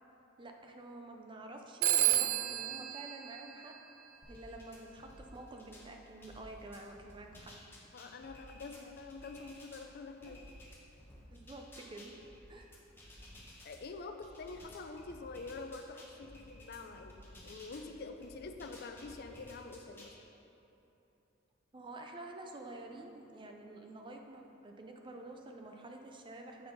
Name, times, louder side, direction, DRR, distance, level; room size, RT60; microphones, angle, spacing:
voice 1, 0.4-3.7 4.3-7.5 10.2-10.4 11.3-12.1 12.5-12.7 21.7-26.7, right 2 dB, 25° right, 3 dB, 0.5 m, -49 dB
Telephone, 1.8-4.3, right 12 dB, 85° right, 0.4 m, -32 dB
sound 1, 4.2-5.9 6.2-9.8 10.2-13.8 14.2-17.9 18.2-20.2, left 1 dB, 10° left, 1.0 m, -54 dB
voice 2, 7.9-10.4 13.6-17.2 17.4-20.1, left 3 dB, 50° left, 6 dB, 0.4 m, -46 dB
7.6 x 4.5 x 5.3 m, 3.0 s
head